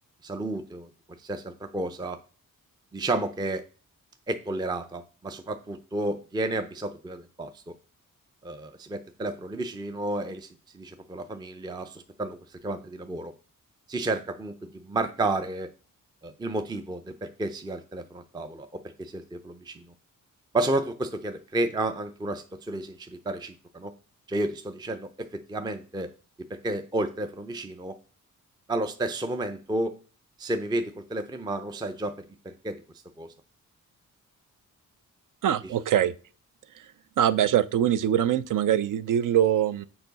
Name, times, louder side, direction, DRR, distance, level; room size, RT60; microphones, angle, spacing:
voice 1, 0.2-0.9 1.2-2.2 2.9-3.6 4.3-7.6 8.4-10.5 10.7-12.4 12.6-13.3 13.9-15.7 16.2-18.7 19.0-19.8 20.5-23.9 24.3-26.1 26.6-27.9 28.7-29.9 30.4-32.1 32.4-32.8 33.2-33.3, right 2 dB, 15° right, 0.4 m, -31 dB
voice 2, 35.4-36.1 37.2-39.8, right 10 dB, 65° right, 0.5 m, -23 dB
6.8 x 4.7 x 4.0 m
wide cardioid pair, 130°, 33 cm